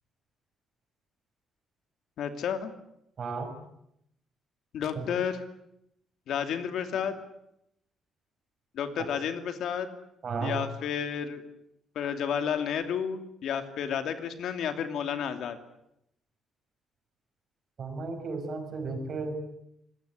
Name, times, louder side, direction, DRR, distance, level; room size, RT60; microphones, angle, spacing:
voice 1, 2.2-2.7 4.7-5.4 6.3-7.2 8.7-9.9 10.4-11.4 11.9-15.6, left 8 dB, 70° left, 8 dB, 2.8 m, -31 dB
voice 2, 3.2-3.5 5.0-5.1 10.2-10.5 17.8-19.4, right 4 dB, 40° right, 6 dB, 6.0 m, -34 dB
26.0 x 20.0 x 9.7 m, 0.79 s
cardioid pair, 155°, 0 cm